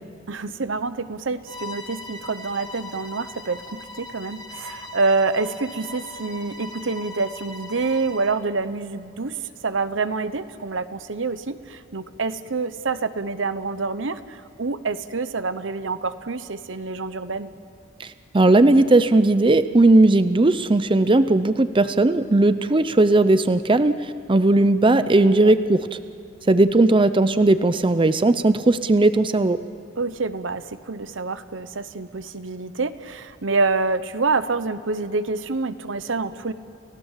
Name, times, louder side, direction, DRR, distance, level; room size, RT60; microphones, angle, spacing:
voice 1, 0.3-9.4 9.6-17.5 25.4-25.5 30.0-36.5, right 3 dB, 85° right, 12 dB, 0.9 m, -27 dB
Bowed string instrument, 1.5-8.4, left 1 dB, 20° left, 1.9 m, -40 dB
voice 2, 18.0-24.0 24.3-26.0 26.5-29.6, right 2 dB, 25° right, 12 dB, 0.6 m, -17 dB
29.5 x 16.0 x 7.4 m, 2.7 s
head